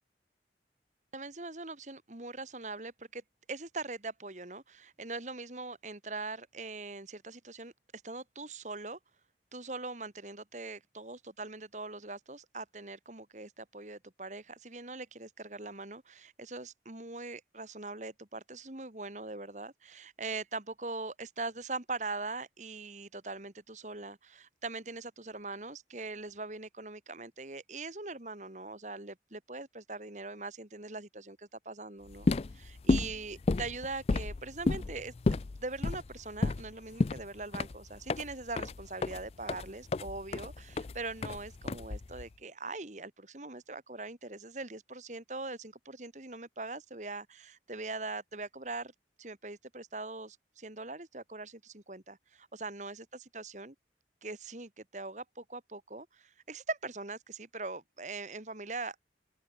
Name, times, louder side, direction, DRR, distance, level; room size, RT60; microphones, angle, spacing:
voice 1, 1.1-3.2 3.5-7.7 8.0-9.0 9.5-32.3 32.5-48.9 49.2-53.7 54.2-59.0, right 3 dB, 40° right, 2.0 m, -42 dB
sound 1, 32.1-42.3, left 3 dB, 35° left, 0.4 m, -32 dB
open air
head